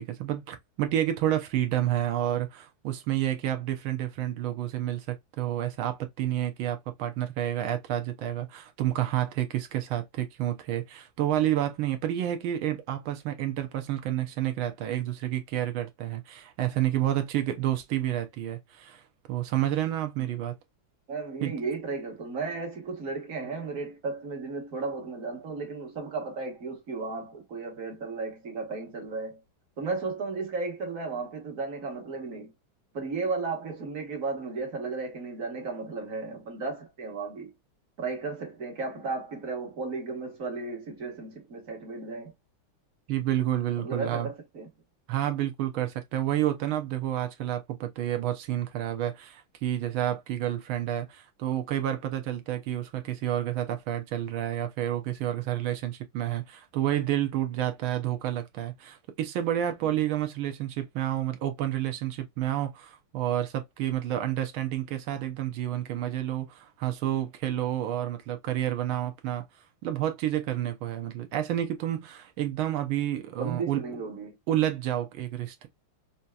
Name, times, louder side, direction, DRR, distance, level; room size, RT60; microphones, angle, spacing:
voice 1, 0.0-19.0 19.3-20.6 21.4-21.5 43.1-44.3 45.1-69.4 69.8-73.8 74.5-75.7, right 12 dB, 75° right, 1.5 m, -29 dB
voice 2, 21.1-29.4 29.8-32.5 32.9-37.5 38.0-42.3 43.8-44.7 59.8-59.9 73.4-74.3, right 4 dB, 45° right, 1.5 m, -34 dB
5.4 x 2.8 x 2.3 m
omnidirectional pair, 2.3 m